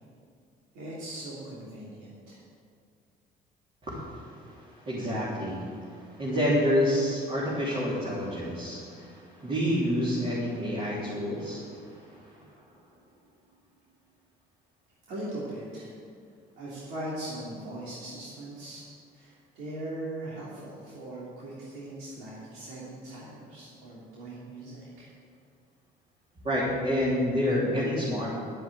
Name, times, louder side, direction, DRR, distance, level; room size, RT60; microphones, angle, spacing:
voice 1, 0.7-2.4 15.1-15.9 16.6-18.9 19.1-25.1, right 1 dB, 90° right, -7 dB, 3.0 m, -40 dB
voice 2, 3.8-12.4 26.4-28.3, equal, 35° right, -8 dB, 3.7 m, -29 dB
12.0 x 7.9 x 8.1 m, 2.2 s
cardioid pair, 110°, 17 cm